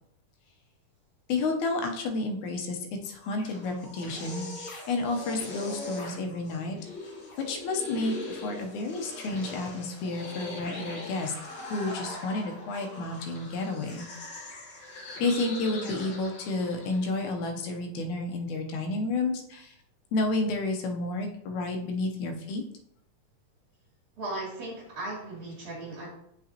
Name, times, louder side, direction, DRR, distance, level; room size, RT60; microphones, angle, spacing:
voice 1, 1.3-6.8 7.5-11.3 11.7-14.1 15.2-19.8 20.1-22.6, left 2 dB, 75° left, 3 dB, 2.0 m, -31 dB
sound 1, 3.1-17.2, left 2 dB, 55° left, 1.2 m, -41 dB
voice 2, 24.2-26.1, right 2 dB, 40° right, -4 dB, 3.5 m, -37 dB
7.7 x 5.9 x 2.8 m, 0.76 s
omnidirectional pair, 3.9 m